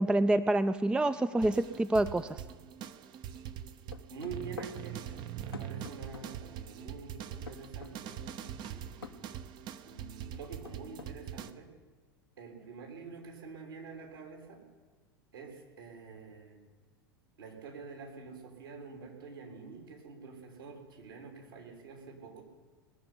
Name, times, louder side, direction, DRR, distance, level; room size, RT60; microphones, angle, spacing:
voice 1, 0.0-2.4, right 1 dB, 5° right, 12 dB, 0.5 m, -27 dB
sound 1, 1.4-11.5, right 9 dB, 40° right, 0.8 m, -43 dB
sound 2, 3.9-4.8 5.5-6.3 7.5-8.0 9.0-9.2 10.3-11.1, left 5 dB, 85° left, 0.9 m, -46 dB
voice 2, 4.1-9.2 9.9-11.7 12.4-14.6 15.3-16.6 17.4-22.4, right 5 dB, 70° right, 2 dB, 3.6 m, -47 dB
19.0 x 6.9 x 9.7 m, 1.4 s
figure-of-eight pair, 85°, 12 cm